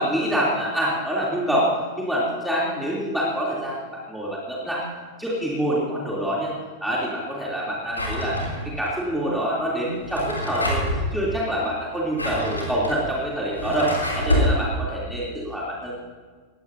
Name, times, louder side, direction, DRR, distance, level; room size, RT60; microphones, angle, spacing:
voice 1, 0.0-1.7 2.0-4.8 5.2-6.5 6.8-8.4 8.6-15.9, equal, 5° right, -6 dB, 3.0 m, -26 dB
Drawer open or close, 7.9-8.9 9.9-11.1 11.9-14.6, left 1 dB, 80° left, 3.1 m, -26 dB
20.0 x 15.5 x 2.7 m, 1.5 s
figure-of-eight pair, 90°, 0 cm